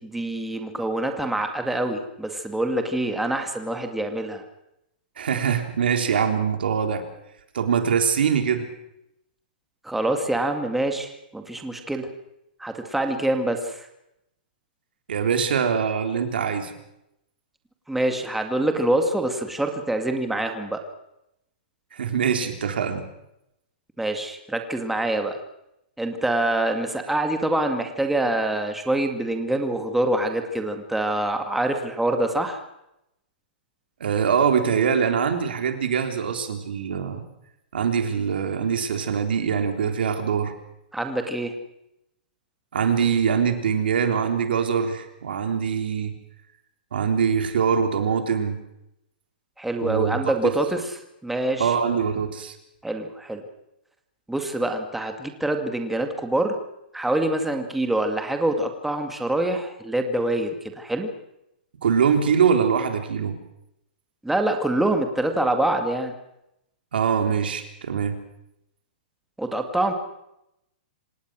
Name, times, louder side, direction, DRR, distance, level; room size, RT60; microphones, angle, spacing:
voice 1, 0.0-4.4 9.8-12.1 12.6-13.9 17.9-20.8 24.0-25.4 26.0-32.6 40.9-41.5 49.6-51.7 52.8-53.4 54.3-56.6 56.9-61.1 64.2-66.1 69.4-69.9, right 1 dB, 5° right, 5 dB, 2.1 m, -25 dB
voice 2, 5.2-7.0 7.5-8.7 15.1-16.7 21.9-23.1 34.0-37.2 37.7-40.5 42.7-46.2 46.9-48.6 49.8-50.4 51.6-52.6 61.8-63.3 66.9-68.2, right 7 dB, 80° right, 6 dB, 3.8 m, -23 dB
27.0 x 18.5 x 6.3 m, 0.83 s
hypercardioid pair, 145°, 5 cm